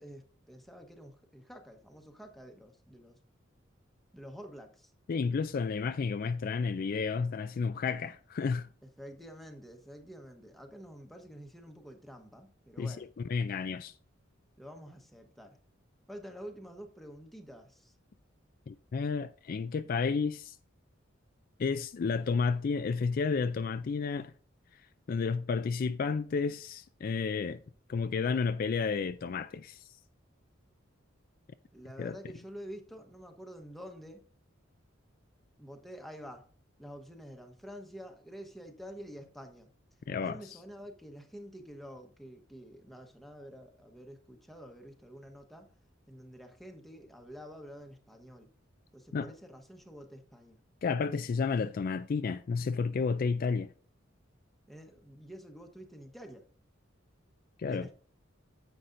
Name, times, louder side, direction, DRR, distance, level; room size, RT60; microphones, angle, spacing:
voice 1, 0.0-3.2 4.1-4.9 8.8-13.1 14.6-15.6 16.1-17.9 31.7-34.2 35.6-36.4 36.8-39.7 40.2-45.7 46.1-48.5 48.9-50.6 54.7-56.4 57.7-57.9, equal, ahead, 1.1 m, -48 dB
voice 2, 5.1-8.7 12.8-13.0 13.3-13.9 18.7-20.6 21.6-24.3 25.1-27.6 27.9-29.8 32.0-32.2 40.1-40.4 49.1-49.3 50.8-53.7 57.6-57.9, left 5 dB, 45° left, 0.3 m, -31 dB
9.7 x 7.9 x 2.6 m
head